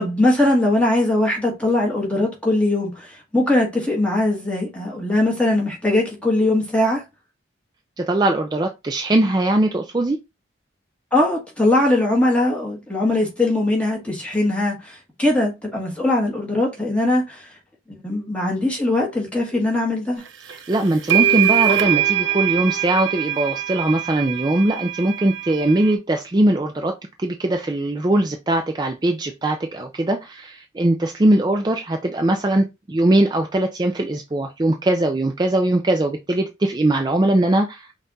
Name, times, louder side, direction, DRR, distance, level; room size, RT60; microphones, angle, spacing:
voice 1, 0.0-7.0 11.1-17.5 17.9-20.2, left 1 dB, 5° left, 1.5 m, -20 dB
voice 2, 8.0-10.2 20.5-37.9, right 1 dB, 20° right, 0.4 m, -20 dB
sound 1, 20.5-20.6 21.1-25.9, right 10 dB, 80° right, 0.7 m, -22 dB
5.5 x 2.4 x 4.0 m
head